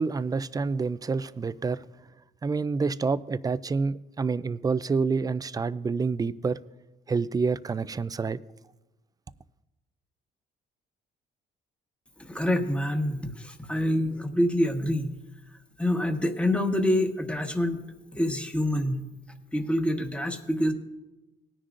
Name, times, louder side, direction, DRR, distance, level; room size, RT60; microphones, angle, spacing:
voice 1, 0.0-1.8 2.4-6.6 7.1-8.4, right 4 dB, 20° right, 0.3 m, -28 dB
voice 2, 12.2-15.1 15.8-17.8 18.1-19.0 19.5-20.7, left 1 dB, 5° left, 1.2 m, -26 dB
19.5 x 10.0 x 2.5 m
cardioid pair, 90°, 20 cm